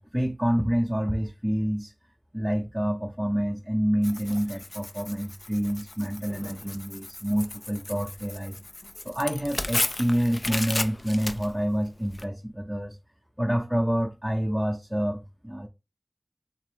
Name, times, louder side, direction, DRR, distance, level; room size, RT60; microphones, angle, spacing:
voice 1, 0.0-1.9 2.3-8.6 9.0-13.0 13.4-15.7, equal, 10° right, 0.5 m, -27 dB
Tearing, 4.0-12.2, left 2 dB, 65° left, 0.4 m, -35 dB
3.5 x 3.3 x 3.4 m
wide cardioid pair, 45°, 0 cm